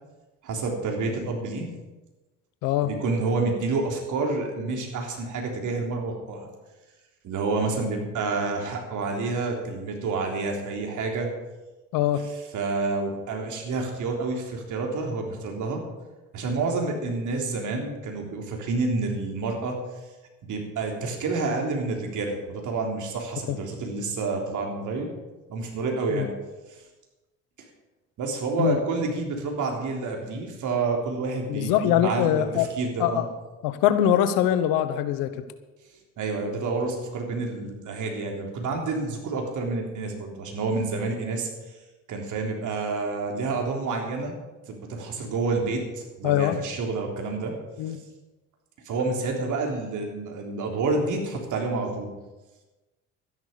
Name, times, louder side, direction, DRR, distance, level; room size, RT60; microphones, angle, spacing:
voice 1, 0.4-1.7 2.8-6.5 7.2-11.3 12.5-15.8 16.3-19.8 20.4-25.1 25.5-26.3 28.2-33.2 36.2-41.5 42.1-44.3 44.7-47.6 48.9-52.1, right 3 dB, 55° right, 2 dB, 3.5 m, -29 dB
voice 2, 2.6-2.9 11.9-12.3 23.5-23.6 26.1-26.3 28.6-28.8 31.5-32.7 33.0-33.2 33.6-35.4 46.2-46.6 47.8-48.0, left 11 dB, 65° left, 12 dB, 1.2 m, -23 dB
13.0 x 11.0 x 6.8 m, 1.1 s
hypercardioid pair, 55°, 36 cm